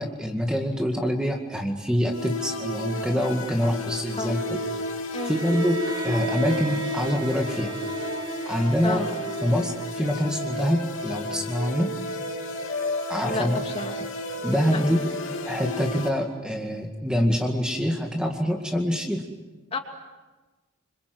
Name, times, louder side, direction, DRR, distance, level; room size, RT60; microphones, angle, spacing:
voice 1, 0.0-4.6 5.2-7.7 8.5-9.0 9.4-11.9 13.1-13.6 14.4-15.1 15.4-19.2, equal, 5° right, 1 dB, 2.0 m, -25 dB
sound 1, 2.1-16.1, left 1 dB, 70° left, 3.8 m, -32 dB
Bowed string instrument, 5.2-10.2, right 1 dB, 20° right, 1.0 m, -37 dB
voice 2, 13.2-13.9 14.7-14.8 19.7-19.8, left 3 dB, 30° left, 3 dB, 2.8 m, -30 dB
27.5 x 26.0 x 7.9 m, 1.2 s
head